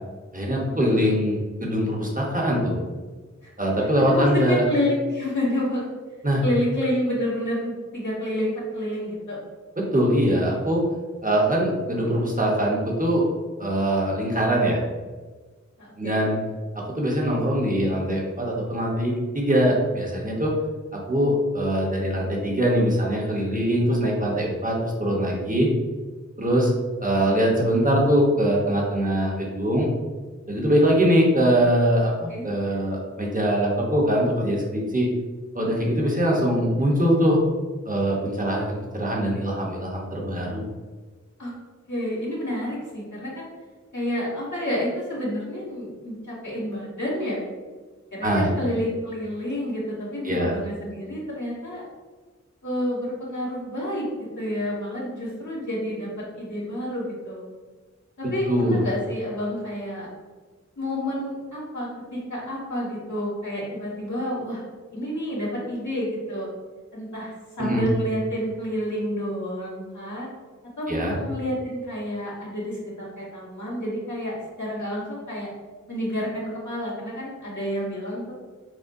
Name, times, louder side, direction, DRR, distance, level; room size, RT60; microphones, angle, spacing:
voice 1, 0.3-2.8 3.6-4.7 6.2-6.4 9.8-10.8 11.2-13.2 13.6-14.8 16.0-16.4 16.7-20.5 20.9-25.7 26.4-26.7 27.0-29.9 30.5-35.1 35.5-37.4 37.9-40.7 48.2-48.5 50.2-50.5 58.5-58.8 67.6-67.8 70.9-71.2, equal, 30° right, -2 dB, 1.0 m, -22 dB
voice 2, 4.1-5.9 6.4-9.4 15.8-16.3 32.3-32.5 35.7-35.9 41.4-41.5 41.9-43.5 43.9-47.5 48.1-51.8 52.6-54.1 54.3-56.1 56.4-57.4 58.2-60.1 60.8-64.6 64.9-66.5 66.9-67.3 67.6-70.3 70.8-75.5 75.9-78.3, equal, 75° left, -7 dB, 1.5 m, -29 dB
6.1 x 2.2 x 2.6 m, 1.4 s
wide cardioid pair, 45°, 30 cm